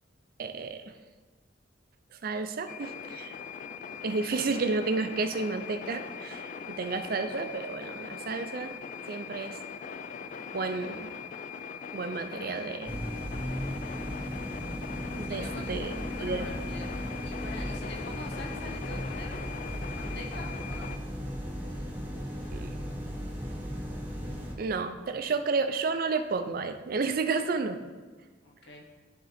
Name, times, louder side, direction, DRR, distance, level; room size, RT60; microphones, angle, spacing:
voice 1, 0.4-0.9 2.1-3.4 4.0-8.8 9.1-9.6 10.5-11.1 11.9-13.0 15.2-16.5 22.5-22.7 24.6-27.8, right 4 dB, 50° right, 9 dB, 0.4 m, -31 dB
sound 1, 2.7-21.0, left 6 dB, 45° left, 0.4 m, -41 dB
sound 2, 12.8-24.5, equal, 10° right, 1.0 m, -36 dB
voice 2, 15.2-19.4 19.9-20.9 28.4-28.8, left 1 dB, 65° left, 0 dB, 1.2 m, -45 dB
11.0 x 3.7 x 3.4 m, 1.3 s
head